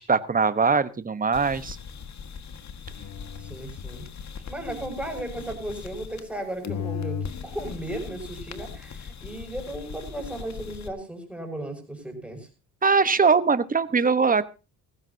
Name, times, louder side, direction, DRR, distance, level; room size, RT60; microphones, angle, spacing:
voice 1, 0.0-1.8 12.8-14.5, right 5 dB, 20° right, 13 dB, 1.1 m, -21 dB
sound 1, 1.3-6.4 6.6-10.9, left 6 dB, 50° left, 1.7 m, -38 dB
voice 2, 3.4-4.1 4.5-12.5, right 1 dB, 5° right, 2 dB, 6.5 m, -35 dB
19.0 x 15.5 x 2.8 m, 0.31 s
cardioid pair, 95°, 37 cm